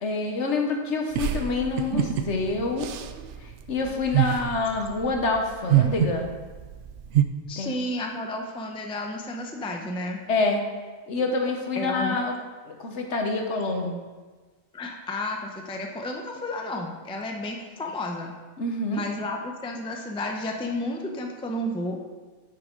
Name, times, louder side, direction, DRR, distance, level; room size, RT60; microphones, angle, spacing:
voice 1, 0.0-2.9 3.4-6.3 7.6-7.7 10.3-10.6 11.1-12.3 12.7-14.0 18.6-19.0, left 3 dB, 60° left, 3 dB, 1.3 m, -27 dB
sound 1, 1.1-7.2, right 11 dB, 65° right, 0.8 m, -26 dB
voice 2, 7.5-10.2 11.8-12.2 14.7-18.3 18.9-22.0, left 1 dB, 5° left, 1 dB, 0.5 m, -32 dB
9.5 x 6.5 x 3.8 m, 1.4 s
omnidirectional pair, 1.4 m